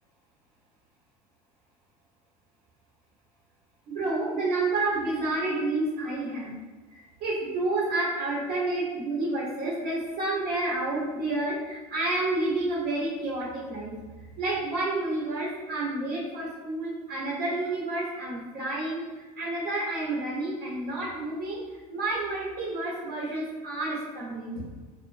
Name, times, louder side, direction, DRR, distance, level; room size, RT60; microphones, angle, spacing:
voice 1, 3.9-6.6 7.2-13.9 14.4-19.0 19.4-21.6 21.9-24.7, right 2 dB, 55° right, -7 dB, 0.9 m, -29 dB
2.3 x 2.1 x 2.6 m, 1.4 s
hypercardioid pair, 85°, 20 cm